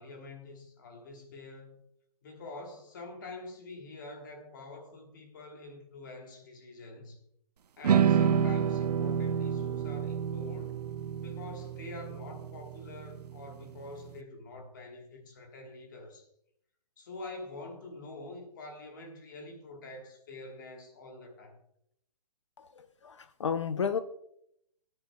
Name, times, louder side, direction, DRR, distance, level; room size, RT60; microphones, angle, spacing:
voice 1, 0.0-1.8 2.2-7.2 7.8-10.8 11.2-16.3 17.0-21.6, left 2 dB, 30° left, 1.4 m, -46 dB
sound 1, 7.8-14.1, right 8 dB, 80° right, 0.7 m, -29 dB
voice 2, 22.6-24.0, left 7 dB, 50° left, 0.5 m, -32 dB
17.5 x 9.8 x 2.2 m
hypercardioid pair, 180°, 20 cm